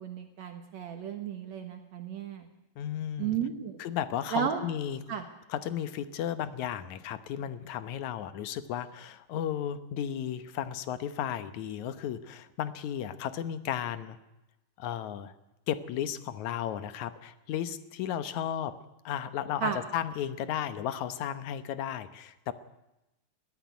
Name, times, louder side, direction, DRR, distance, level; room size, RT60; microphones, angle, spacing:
voice 1, 0.0-2.5 3.2-3.8 4.3-4.6 5.1-5.2 19.6-19.8, right 8 dB, 60° right, 6 dB, 2.4 m, -33 dB
voice 2, 2.8-3.4 3.8-5.0 5.5-14.2 14.8-15.3 15.7-18.8 19.1-22.5, left 10 dB, 70° left, 12 dB, 2.3 m, -34 dB
21.5 x 13.5 x 9.5 m, 0.95 s
omnidirectional pair, 3.7 m